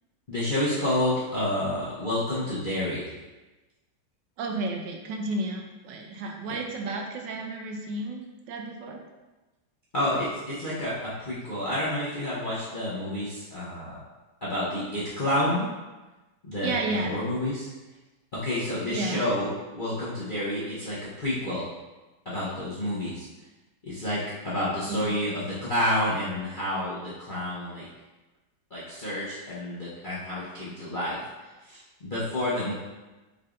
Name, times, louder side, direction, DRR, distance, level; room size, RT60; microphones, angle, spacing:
voice 1, 0.3-3.1 9.9-14.0 14.4-15.7 16.4-17.7 18.3-21.7 22.2-23.3 23.8-27.9 28.7-31.2 31.6-32.7, left 1 dB, 45° left, -9 dB, 0.6 m, -29 dB
voice 2, 4.4-8.2 8.5-9.0 16.6-17.2 18.9-19.3 24.9-25.0 25.3-25.4, right 2 dB, 80° right, 2 dB, 1.2 m, -32 dB
5.5 x 3.4 x 2.5 m, 1.1 s
omnidirectional pair, 2.0 m